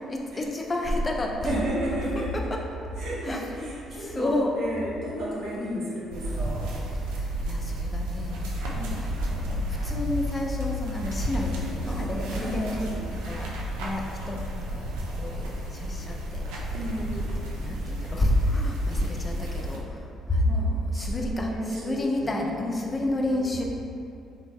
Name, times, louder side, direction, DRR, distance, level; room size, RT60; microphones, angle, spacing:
voice 1, 0.1-1.4 2.2-2.6 3.2-3.7 4.0-4.6 5.6-5.9 7.1-8.5 9.0-12.8 13.1-13.5 13.8-14.8 15.2-16.4 17.2-20.0 20.3-23.6, left 1 dB, 30° left, 1 dB, 0.4 m, -30 dB
voice 2, 1.4-2.3 3.0-6.7 8.7-9.0 12.3-13.0 16.7-17.4 20.4-20.6 20.9-22.5 22.9-23.5, right 1 dB, 65° right, -6 dB, 0.8 m, -33 dB
sound 1, 6.1-19.8, equal, 85° right, 0.3 m, -32 dB
2.9 x 2.2 x 2.7 m, 2.6 s
supercardioid pair, 60°, 0 cm